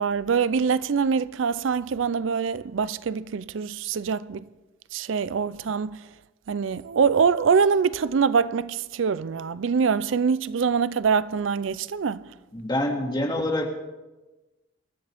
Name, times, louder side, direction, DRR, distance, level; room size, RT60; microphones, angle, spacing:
voice 1, 0.0-4.4 4.9-6.0 6.5-12.2, right 6 dB, 80° right, 0.5 m, -24 dB
voice 2, 12.5-13.7, left 1 dB, 25° left, 2.2 m, -26 dB
26.0 x 13.0 x 3.5 m
head